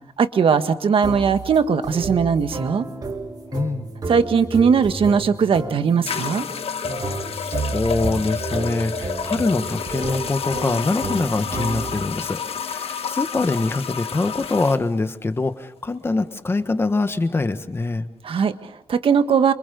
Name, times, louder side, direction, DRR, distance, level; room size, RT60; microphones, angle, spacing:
voice 1, 0.2-2.9 4.1-6.5 18.2-19.5, right 6 dB, 65° right, 9 dB, 1.6 m, -19 dB
sound 1, 1.0-12.2, right 3 dB, 40° right, 2.4 m, -31 dB
voice 2, 3.5-3.9 6.9-12.4 12.7-18.1, left 3 dB, 25° left, 9 dB, 1.5 m, -24 dB
sound 2, 5.2-5.3 6.1-14.8, left 7 dB, 80° left, 1.4 m, -30 dB
27.0 x 25.5 x 7.0 m, 0.78 s
wide cardioid pair, 180°, 10 cm